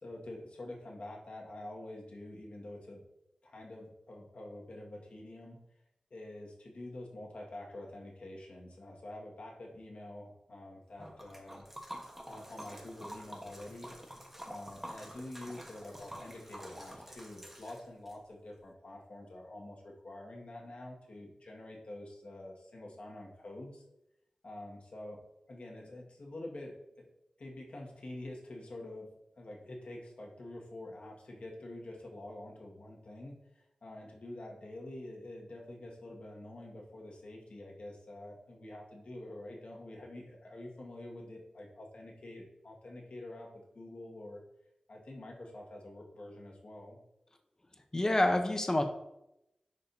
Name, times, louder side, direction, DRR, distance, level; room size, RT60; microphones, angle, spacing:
voice 1, 0.0-3.0 3.4-5.6 6.1-11.7 12.3-13.9 14.4-23.8 24.4-25.2 25.5-27.1 27.4-29.1 29.3-44.4 44.9-47.0, left 1 dB, 70° left, -2 dB, 1.8 m, -47 dB
Liquid, 11.0-18.2, equal, 10° right, 1.2 m, -48 dB
voice 2, 47.9-48.8, left 1 dB, 25° left, 5 dB, 0.8 m, -27 dB
10.5 x 5.0 x 2.8 m, 0.86 s
wide cardioid pair, 90°, 2 cm